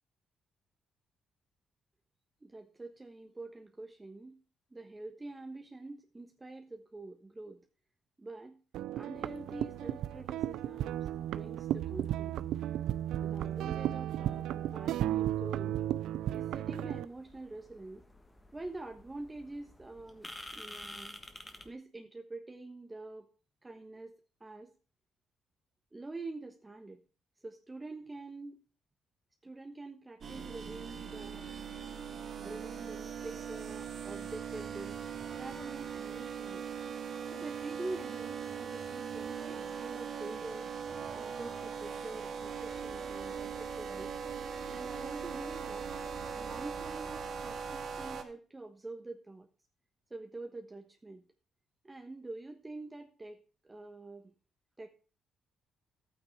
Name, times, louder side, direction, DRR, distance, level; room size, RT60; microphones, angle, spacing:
voice 1, 2.4-4.4 4.7-7.6 8.2-8.6 8.9-12.5 13.2-15.8 16.3-18.0 18.5-21.2 21.6-23.3 23.6-24.7 25.9-27.0 27.4-28.6 29.4-31.5 32.4-35.0 35.3-36.7 37.3-40.7 41.1-44.1 44.7-45.9 46.3-49.5 50.1-51.2 51.8-54.3 54.8-54.9, right 2 dB, 20° right, 4 dB, 1.3 m, -46 dB
sound 1, 8.7-17.1, right 12 dB, 85° right, 0.4 m, -34 dB
sound 2, 9.1-21.7, left 1 dB, 15° left, 1.6 m, -53 dB
sound 3, 30.2-48.2, right 6 dB, 55° right, 2.0 m, -40 dB
12.0 x 9.0 x 4.7 m, 0.37 s
cardioid pair, 90°, 0 cm